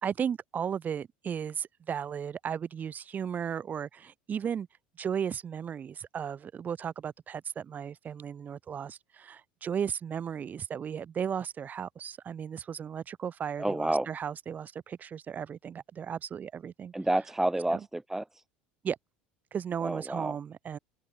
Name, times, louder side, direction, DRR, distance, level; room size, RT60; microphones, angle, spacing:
voice 1, 0.0-4.7 5.0-16.9 17.7-17.8 18.8-19.0 19.5-20.8, right 8 dB, 35° right, 2.6 m, -35 dB
voice 2, 13.6-14.1 16.9-18.2 19.8-20.4, right 1 dB, 5° right, 1.0 m, -29 dB
figure-of-eight pair, 70°, 5 cm